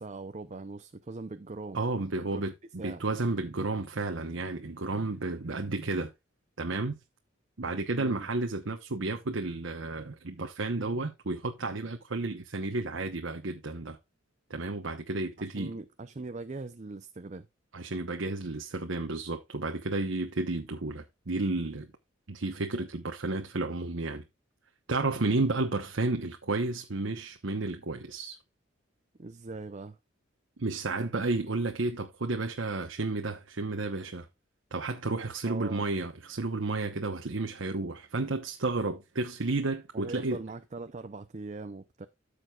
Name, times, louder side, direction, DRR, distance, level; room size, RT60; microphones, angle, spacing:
voice 1, 0.0-1.8 2.2-2.4 2.8-3.0 7.9-8.3 15.4-17.5 29.2-30.0 35.4-35.9 39.9-42.1, right 3 dB, 35° right, 0.6 m, -41 dB
voice 2, 1.7-6.1 6.6-7.0 7.6-14.0 14.5-15.7 17.7-21.9 22.3-24.2 24.9-28.4 30.6-34.3 34.7-40.4, right 2 dB, 75° right, 1.0 m, -32 dB
14.0 x 6.4 x 2.4 m
head